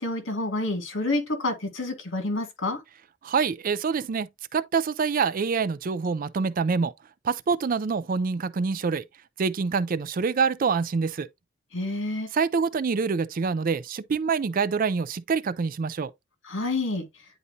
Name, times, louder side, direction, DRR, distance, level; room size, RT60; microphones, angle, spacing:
voice 1, 0.0-2.8 11.7-12.3 16.5-17.0, left 2 dB, 65° left, 2.1 m, -28 dB
voice 2, 3.2-6.9 7.2-9.0 9.4-11.3 12.3-16.1, right 5 dB, 45° right, 0.4 m, -26 dB
9.8 x 4.0 x 2.7 m
head